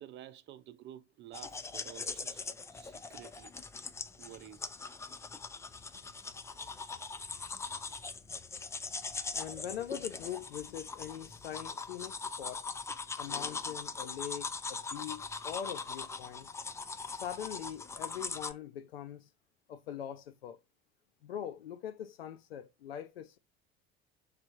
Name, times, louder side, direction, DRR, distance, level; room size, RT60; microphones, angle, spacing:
voice 1, 0.0-2.4 2.7-3.5 4.2-4.7, right 11 dB, 40° right, 0.6 m, -51 dB
sound 1, 1.3-18.5, left 4 dB, 10° left, 0.3 m, -41 dB
voice 2, 9.3-12.7 13.2-16.5 17.0-19.3 19.7-20.6 21.2-23.4, left 10 dB, 75° left, 0.6 m, -42 dB
3.3 x 3.3 x 4.5 m
figure-of-eight pair, 65°, 30 cm